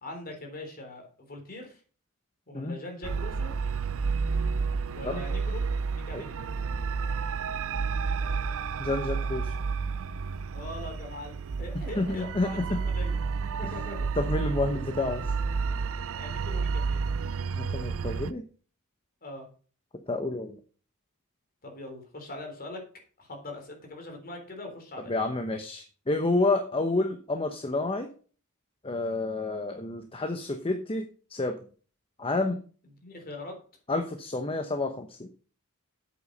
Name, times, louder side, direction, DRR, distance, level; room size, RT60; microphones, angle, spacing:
voice 1, 0.0-1.8 2.5-3.5 4.9-6.4 10.5-13.2 13.4-14.1 16.0-17.0 19.2-19.5 21.6-22.8 23.2-25.1 33.0-33.6, left 1 dB, 40° left, 3 dB, 3.7 m, -42 dB
sound 1, 3.0-18.3, right 5 dB, 65° right, 0.5 m, -31 dB
voice 2, 8.8-9.5 12.0-12.8 14.2-15.2 17.6-18.4 20.1-20.6 25.1-28.1 28.8-31.0 31.3-31.6 32.2-32.6 33.9-35.3, left 2 dB, 25° left, 6 dB, 0.9 m, -29 dB
8.3 x 8.1 x 5.4 m, 0.40 s
head